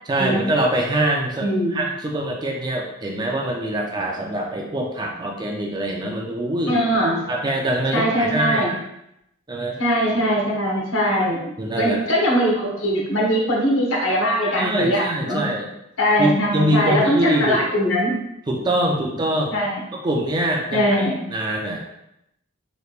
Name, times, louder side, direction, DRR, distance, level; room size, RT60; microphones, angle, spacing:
voice 1, 0.1-6.8 7.3-8.8 9.5-9.8 11.6-12.0 14.5-15.7 16.2-17.6 18.5-19.6 19.9-21.8, right 1 dB, 20° right, 0 dB, 0.4 m, -24 dB
voice 2, 1.4-1.8 6.7-7.2 7.9-8.8 9.8-15.4 16.0-18.2 19.5-19.8 20.7-21.2, equal, 75° left, -2 dB, 0.9 m, -21 dB
3.1 x 3.1 x 2.4 m, 0.82 s
head